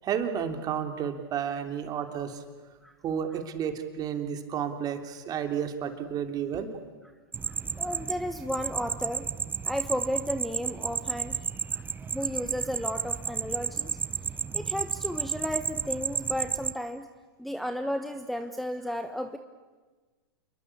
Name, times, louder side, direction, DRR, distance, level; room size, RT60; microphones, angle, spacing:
voice 1, 0.0-2.4 3.0-6.7, right 8 dB, 30° right, 6 dB, 3.2 m, -31 dB
sound 1, 7.3-16.7, right 6 dB, 15° right, 0.8 m, -32 dB
voice 2, 7.4-9.3 9.6-11.4 11.7-11.8 12.1-14.0 14.5-17.1 17.4-19.4, equal, ahead, 9 dB, 1.1 m, -33 dB
28.5 x 22.5 x 8.6 m, 1.3 s
hypercardioid pair, 115°, 13 cm